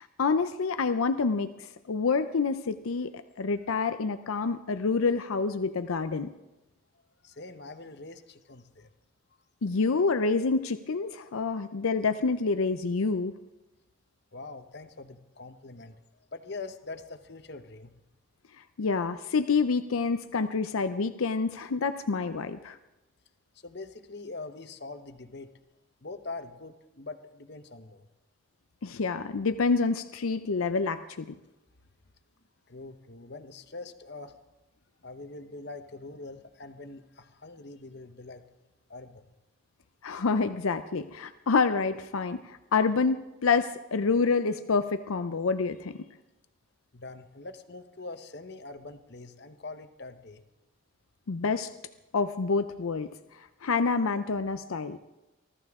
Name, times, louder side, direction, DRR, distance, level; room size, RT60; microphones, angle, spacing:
voice 1, 0.0-6.3 9.6-13.3 18.8-22.8 28.8-31.4 40.0-46.0 51.3-51.7 52.1-53.1 53.6-55.0, left 4 dB, 80° left, 10 dB, 0.6 m, -27 dB
voice 2, 7.2-8.9 14.3-16.0 16.3-17.9 23.5-25.5 26.0-28.1 32.7-34.4 35.0-38.4 38.9-39.2 46.9-50.4, left 3 dB, 50° left, 9 dB, 1.0 m, -43 dB
24.0 x 14.0 x 3.7 m, 1.0 s
head